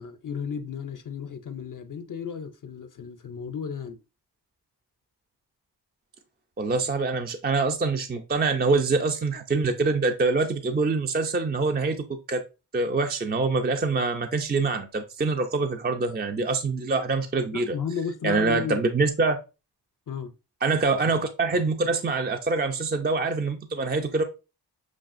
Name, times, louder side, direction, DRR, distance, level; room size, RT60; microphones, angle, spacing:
voice 1, 0.0-4.0 17.5-18.8 20.1-20.3, left 6 dB, 50° left, 0.5 m, -34 dB
voice 2, 6.6-12.4 12.7-17.8 18.2-19.4 20.6-24.2, right 3 dB, 25° right, 0.4 m, -25 dB
6.0 x 2.4 x 2.4 m
cardioid pair, 55°, 42 cm